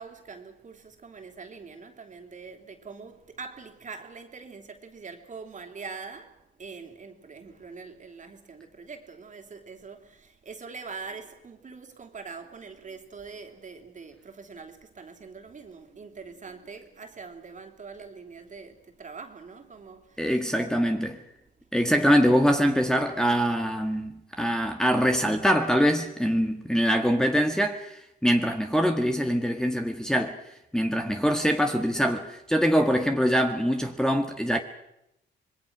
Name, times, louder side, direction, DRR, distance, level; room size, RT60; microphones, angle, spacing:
voice 1, 0.0-20.4 21.9-22.0, right 5 dB, 40° right, 3.2 m, -43 dB
voice 2, 20.2-21.2 21.7-30.4 30.7-34.6, equal, 5° left, 1.7 m, -24 dB
26.0 x 21.0 x 6.2 m
cardioid pair, 90°, 20 cm